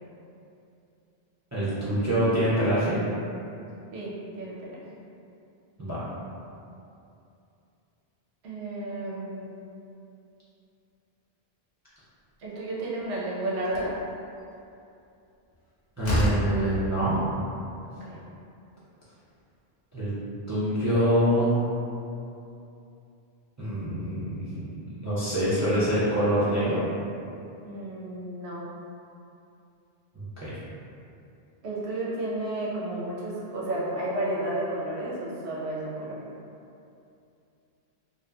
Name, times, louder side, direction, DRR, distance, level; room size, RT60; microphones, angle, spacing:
voice 1, 1.5-3.0 5.8-6.0 16.0-17.2 19.9-20.1 20.5-21.5 23.6-24.7 25.0-26.8 30.1-30.5, equal, 30° right, -11 dB, 0.3 m, -25 dB
voice 2, 3.9-4.8 8.4-9.5 12.4-14.0 17.8-18.2 27.6-28.7 31.6-36.2, right 1 dB, 90° right, -6 dB, 0.9 m, -32 dB
Slam, 13.0-13.1 13.6-14.0 15.5-15.6 16.0-16.6, equal, 85° left, 0.9 m, -27 dB
2.8 x 2.1 x 2.3 m, 2.7 s
omnidirectional pair, 1.0 m